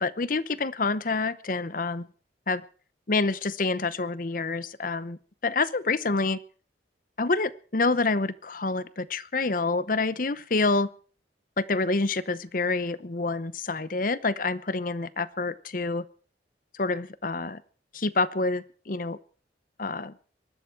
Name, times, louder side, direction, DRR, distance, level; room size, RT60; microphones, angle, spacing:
voice 1, 0.0-2.1 2.5-2.6 3.1-5.2 5.4-6.4 7.2-10.9 11.6-16.0 16.7-17.6 17.9-19.2 19.8-20.1, left 3 dB, 50° left, 16 dB, 0.8 m, -27 dB
23.0 x 12.5 x 4.7 m, 0.41 s
head